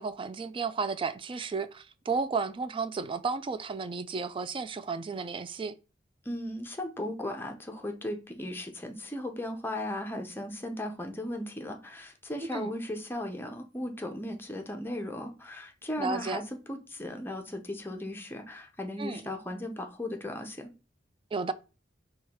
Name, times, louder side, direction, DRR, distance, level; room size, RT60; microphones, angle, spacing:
voice 1, 0.0-5.7 12.5-12.7 16.0-16.4 19.0-19.2 21.3-21.5, right 4 dB, 30° right, 0.3 m, -33 dB
voice 2, 6.3-16.4 16.7-20.7, left 1 dB, 10° left, 0.7 m, -36 dB
4.8 x 2.3 x 4.2 m
head